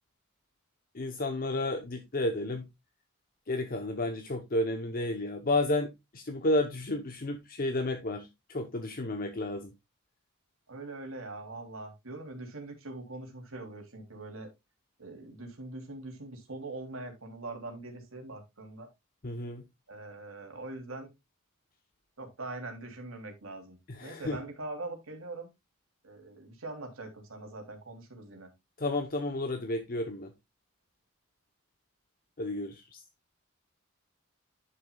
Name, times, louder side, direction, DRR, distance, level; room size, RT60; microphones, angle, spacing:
voice 1, 0.9-2.7 3.5-9.7 19.2-19.6 23.9-24.4 28.8-30.3 32.4-33.0, left 2 dB, 45° left, 0.9 m, -32 dB
voice 2, 10.7-14.5 15.0-18.9 19.9-21.1 22.2-25.5 26.0-28.5, right 2 dB, 70° right, 3.1 m, -42 dB
11.0 x 6.6 x 2.3 m
head